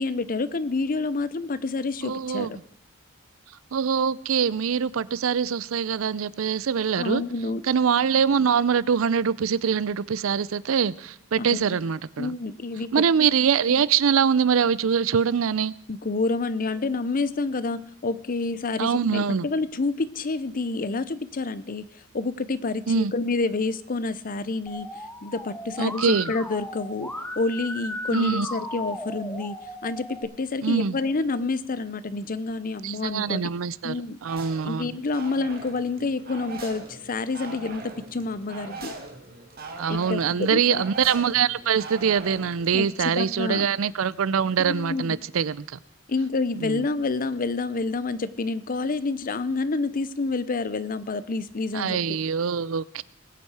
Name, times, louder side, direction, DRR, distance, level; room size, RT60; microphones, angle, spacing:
voice 1, 0.0-2.6 7.0-7.6 11.4-11.6 12.2-12.9 13.2-13.3 13.7-13.8 15.9-21.9 22.1-24.9 25.2-29.6 29.8-33.4 33.8-34.2 34.6-38.9 39.9-40.8 42.7-42.8 43.2-43.7 44.6-45.2 46.1-52.2, left 3 dB, 45° left, 0.7 m, -28 dB
voice 2, 2.0-2.6 3.7-7.2 7.6-12.3 12.9-15.7 18.8-19.5 22.9-23.1 25.8-26.3 28.1-28.5 30.6-31.0 32.8-34.9 39.8-45.8 46.6-46.9 51.7-53.0, right 7 dB, 75° right, 0.5 m, -24 dB
Musical instrument, 24.7-30.2, left 1 dB, 10° left, 1.7 m, -36 dB
sound 1, 34.2-42.9, right 3 dB, 50° right, 2.1 m, -41 dB
20.5 x 8.5 x 4.8 m
head